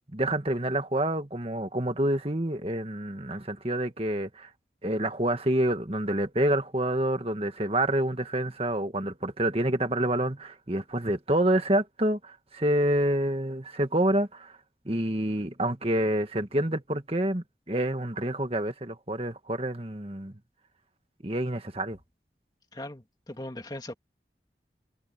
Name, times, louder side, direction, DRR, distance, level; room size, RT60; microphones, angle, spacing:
voice 1, 0.1-4.5 4.8-14.5 14.9-20.3 21.2-22.0, right 1 dB, 35° right, 1.9 m, -27 dB
voice 2, 22.7-23.9, left 1 dB, 25° left, 2.4 m, -39 dB
head